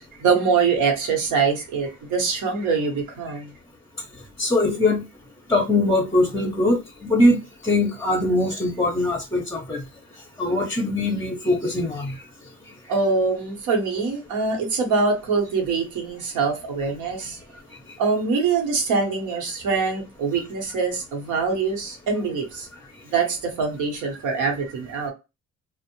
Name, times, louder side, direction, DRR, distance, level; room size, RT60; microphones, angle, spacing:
voice 1, 0.2-3.5 12.9-17.4 18.0-22.7 23.1-25.1, right 4 dB, 90° right, 1.0 m, -24 dB
voice 2, 4.4-5.0 5.5-9.8 10.4-12.2, left 2 dB, 10° left, 0.6 m, -22 dB
2.5 x 2.0 x 2.9 m
cardioid pair, 90°, 30 cm